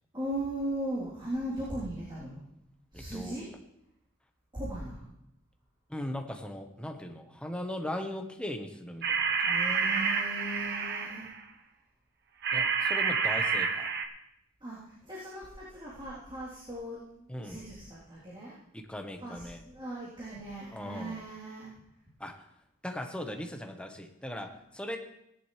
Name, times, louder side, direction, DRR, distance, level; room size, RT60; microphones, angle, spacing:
voice 1, 0.1-2.4 2.9-3.5 4.5-5.1 9.4-11.3 14.6-18.6 19.2-21.7, right 1 dB, 25° right, -9 dB, 3.4 m, -38 dB
voice 2, 2.9-3.4 5.9-9.4 12.5-13.9 17.3-17.6 18.7-19.6 20.7-21.2 22.2-22.4 22.8-25.0, left 1 dB, 5° left, 4 dB, 1.2 m, -39 dB
sound 1, 9.0-11.4 12.4-14.0, right 5 dB, 55° right, 1.2 m, -29 dB
18.0 x 10.5 x 3.3 m, 0.80 s
head